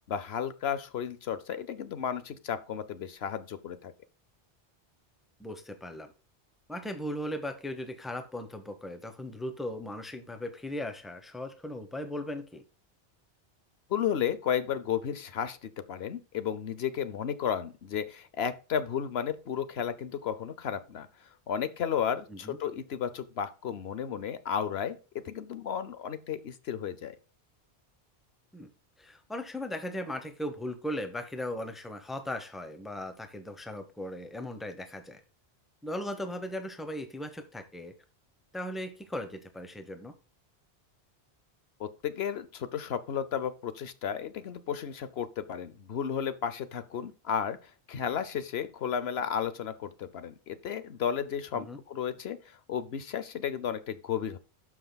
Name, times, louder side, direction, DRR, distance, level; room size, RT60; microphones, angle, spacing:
voice 1, 0.1-3.9 13.9-21.1 21.5-27.1 41.8-54.4, left 8 dB, 70° left, 13 dB, 0.9 m, -33 dB
voice 2, 5.4-6.1 6.7-12.6 22.3-22.6 28.5-28.7 29.0-35.2 35.8-37.9 38.5-40.1 51.5-51.8, left 1 dB, ahead, 8 dB, 0.9 m, -38 dB
12.5 x 6.0 x 2.3 m, 0.33 s
omnidirectional pair, 1.1 m